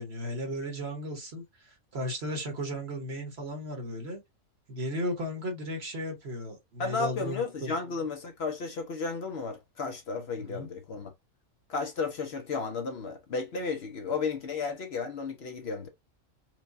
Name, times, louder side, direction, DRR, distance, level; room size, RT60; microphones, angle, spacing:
voice 1, 0.0-4.2 4.7-7.7 10.4-10.7, equal, 55° right, 1.4 m, -35 dB
voice 2, 6.8-11.1 11.7-15.9, left 4 dB, 55° left, 0.9 m, -33 dB
4.6 x 2.2 x 2.6 m
omnidirectional pair, 1.4 m